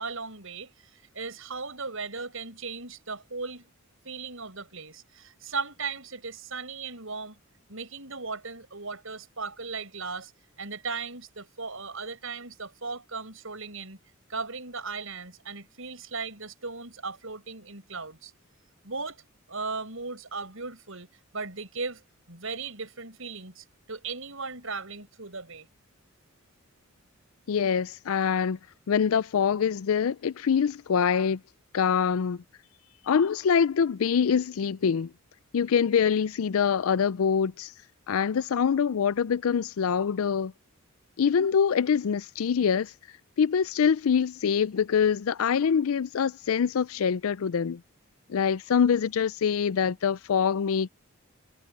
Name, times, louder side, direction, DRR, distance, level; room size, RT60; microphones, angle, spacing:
voice 1, 0.0-3.7 4.0-7.4 7.7-10.3 10.6-14.0 14.3-18.3 18.8-19.2 19.5-21.1 21.3-22.0 22.3-25.7, right 4 dB, 65° right, 7.7 m, -37 dB
voice 2, 27.5-28.6 28.9-31.4 31.7-32.4 33.1-35.1 35.5-37.7 38.1-40.5 41.2-42.9 43.4-47.8 48.3-50.9, left 7 dB, 75° left, 0.4 m, -24 dB
head